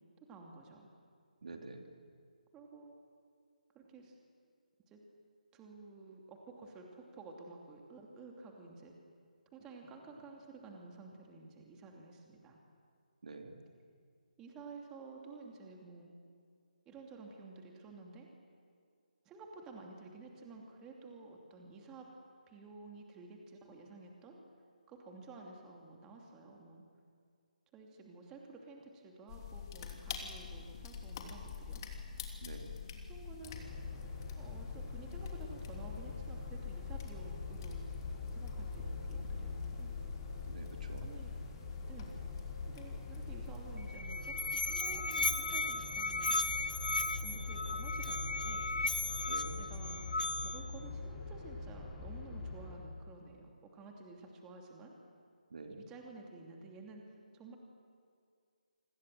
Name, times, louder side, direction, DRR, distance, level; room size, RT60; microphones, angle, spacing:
voice 1, 0.3-0.9 2.5-2.9 3.7-4.2 4.9-5.0 5.5-8.9 9.5-12.6 14.4-16.1 16.9-18.3 19.2-22.1 22.5-24.4 24.9-26.8 27.7-31.8 33.1-33.6 34.4-39.9 41.0-41.3 41.9-42.1 42.7-46.4 47.2-48.6 49.6-50.0 50.4-54.9 55.8-57.6, right 3 dB, 15° right, 1 dB, 2.8 m, -52 dB
voice 2, 1.4-1.8 13.2-13.5 32.4-32.7 40.5-41.1 49.3-49.6 55.5-55.8, right 3 dB, 55° right, 4 dB, 3.1 m, -47 dB
sound 1, 29.3-44.0, left 7 dB, 30° left, 3.1 m, -45 dB
sound 2, 33.4-52.8, left 3 dB, 10° left, 4.4 m, -44 dB
Musical instrument, 43.8-50.8, left 3 dB, 75° left, 1.3 m, -36 dB
28.0 x 25.5 x 7.8 m, 2.3 s
figure-of-eight pair, 150°, 5 cm